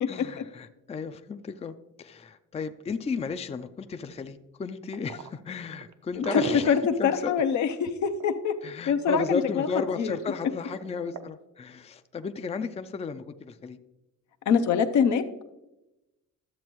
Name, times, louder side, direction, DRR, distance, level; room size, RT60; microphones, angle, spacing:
voice 1, 0.1-7.4 8.6-13.8, left 5 dB, 20° left, 10 dB, 0.4 m, -34 dB
sound 1, 4.9-8.6 10.7-11.3, right 6 dB, 65° right, 0.7 m, -36 dB
voice 2, 6.1-8.6 8.9-9.7 10.0-10.2 14.5-15.4, left 6 dB, 70° left, 8 dB, 0.8 m, -24 dB
12.0 x 7.3 x 3.1 m, 0.97 s
cardioid pair, 90°, 30 cm